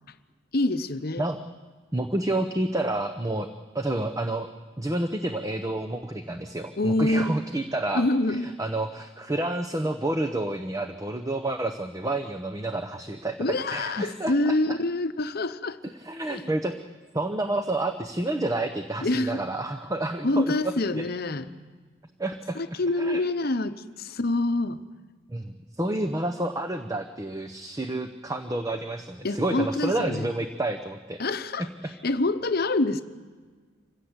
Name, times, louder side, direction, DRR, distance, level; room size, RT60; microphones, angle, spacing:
voice 1, 0.5-1.3 6.8-7.4 7.9-8.5 13.4-15.8 16.3-16.5 19.0-19.4 20.2-21.5 22.5-24.8 29.2-30.3 31.2-31.7 32.0-33.0, left 2 dB, 50° left, 11 dB, 0.9 m, -26 dB
voice 2, 1.9-3.5 3.7-4.5 4.8-14.6 16.0-16.8 17.1-21.0 22.2-22.6 23.0-23.2 25.3-31.2 31.8-31.9, right 1 dB, 15° right, 7 dB, 0.8 m, -29 dB
25.5 x 16.5 x 8.1 m, 1.5 s
head